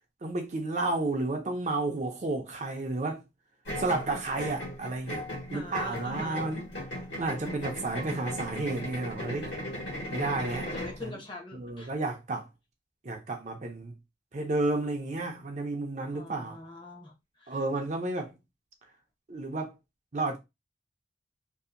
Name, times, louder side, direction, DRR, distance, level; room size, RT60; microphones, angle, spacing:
voice 1, 0.2-3.2 3.8-5.2 5.5-6.6 7.2-9.5 10.1-10.7 11.0-11.1 11.5-12.5 13.0-13.9 14.3-16.6 17.5-18.3 19.3-19.7 20.1-20.4, right 2 dB, 40° right, 0.5 m, -31 dB
sound 1, 3.6-11.0, left 1 dB, 60° left, 1.3 m, -37 dB
voice 2, 5.5-6.5 10.7-11.9 16.1-17.6, left 2 dB, 25° left, 0.8 m, -43 dB
2.7 x 2.5 x 2.5 m
head